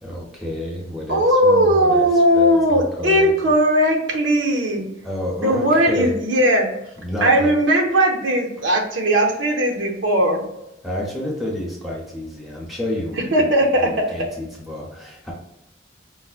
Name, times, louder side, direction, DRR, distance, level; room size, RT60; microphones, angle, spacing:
voice 1, 0.0-3.5 5.0-6.1 7.0-7.5 10.8-13.5 13.8-15.3, left 1 dB, ahead, -2 dB, 0.7 m, -29 dB
voice 2, 1.1-4.9 5.4-6.7 7.2-10.4 13.3-14.0, equal, 70° right, 1 dB, 0.7 m, -18 dB
4.6 x 2.1 x 2.4 m, 0.89 s
head